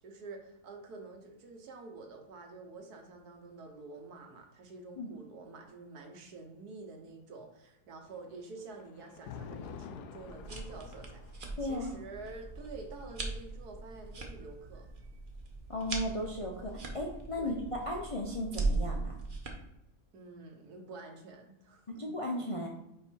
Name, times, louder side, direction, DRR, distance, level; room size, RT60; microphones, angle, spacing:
voice 1, 0.0-14.9 17.4-17.6 20.1-21.8, right 3 dB, 75° right, 3 dB, 1.6 m, -48 dB
Thunder, 8.0-15.2 16.3-18.0, left 7 dB, 90° left, 1.1 m, -51 dB
sound 1, 10.2-19.5, right 3 dB, 40° right, 0.9 m, -39 dB
voice 2, 11.6-11.9 15.7-19.2 21.9-22.7, left 1 dB, 40° left, -1 dB, 0.5 m, -35 dB
5.3 x 4.8 x 4.5 m, 0.85 s
omnidirectional pair, 1.6 m